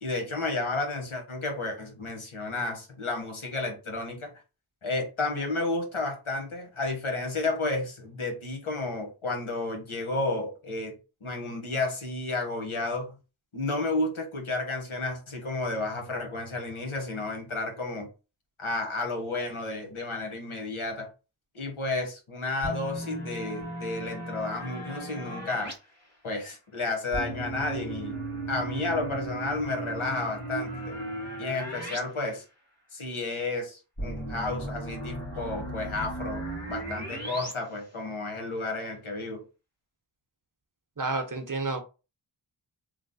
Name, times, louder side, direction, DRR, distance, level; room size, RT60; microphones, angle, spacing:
voice 1, 0.0-4.3 4.8-13.2 13.5-18.1 18.6-21.1 21.5-25.7 26.2-28.2 28.5-31.0 31.4-32.4 32.9-39.4, left 2 dB, 80° left, 1.1 m, -32 dB
sound 1, 22.6-25.7 27.1-32.0 32.3-32.4 34.0-37.5, right 1 dB, 30° left, 1.9 m, -36 dB
voice 2, 41.0-41.8, right 3 dB, 40° right, 0.8 m, -30 dB
3.2 x 2.0 x 3.9 m
wide cardioid pair, 40°, 48 cm